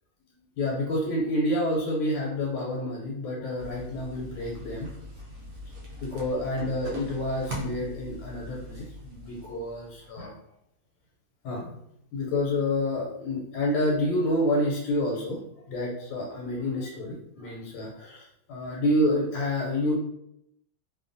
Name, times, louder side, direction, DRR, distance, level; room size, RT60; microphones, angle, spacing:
voice 1, 0.6-4.9 6.0-10.3 11.4-11.8 12.1-15.4 15.7-19.9, left 1 dB, 85° left, -2 dB, 1.3 m, -28 dB
sound 1, 3.6-10.1, equal, 65° right, 0.9 m, -41 dB
3.0 x 2.1 x 2.5 m, 0.77 s
omnidirectional pair, 2.0 m